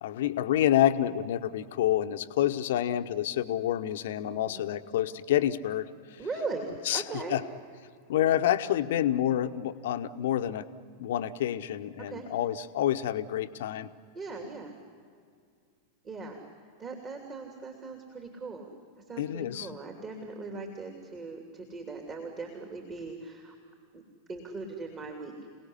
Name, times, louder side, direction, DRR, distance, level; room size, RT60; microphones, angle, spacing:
voice 1, 0.0-5.9 6.8-7.0 7.3-7.4 8.1-10.7 11.0-13.9 19.2-19.7, left 11 dB, 55° left, 10 dB, 1.0 m, -28 dB
voice 2, 6.2-7.3 12.1-12.2 14.1-14.7 16.0-16.4 16.8-18.7 19.1-23.5 23.9-24.0 24.3-25.3, right 3 dB, 25° right, 2 dB, 2.9 m, -39 dB
28.5 x 18.5 x 10.0 m, 2.2 s
figure-of-eight pair, 90°, 0 cm